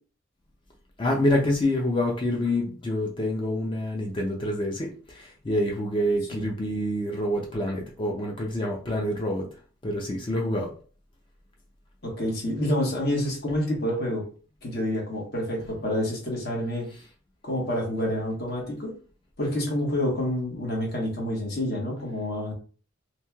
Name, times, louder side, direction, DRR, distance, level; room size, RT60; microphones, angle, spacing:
voice 1, 1.0-9.5 9.8-10.7 17.0-17.1, left 1 dB, 25° left, 0.4 m, -27 dB
voice 2, 12.0-14.3 14.6-16.9 17.4-18.9 19.4-22.5, left 1 dB, 45° left, 1.1 m, -28 dB
3.0 x 2.7 x 2.2 m
head